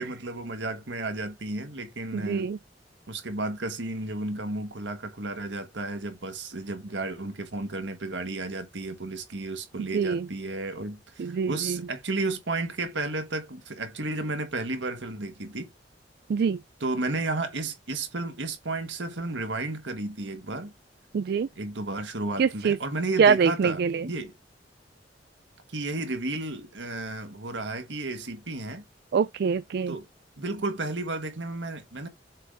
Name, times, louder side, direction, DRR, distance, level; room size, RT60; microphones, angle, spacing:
voice 1, 0.0-2.5 3.1-15.7 16.8-20.7 21.6-24.3 25.7-28.8 29.9-30.0 30.4-32.1, right 2 dB, 80° right, 1.6 m, -33 dB
voice 2, 2.1-2.6 9.8-10.3 11.2-11.8 16.3-16.6 21.1-21.5 22.4-22.8 23.2-24.1 29.1-30.0, right 6 dB, 60° right, 0.3 m, -24 dB
7.3 x 3.9 x 3.5 m
head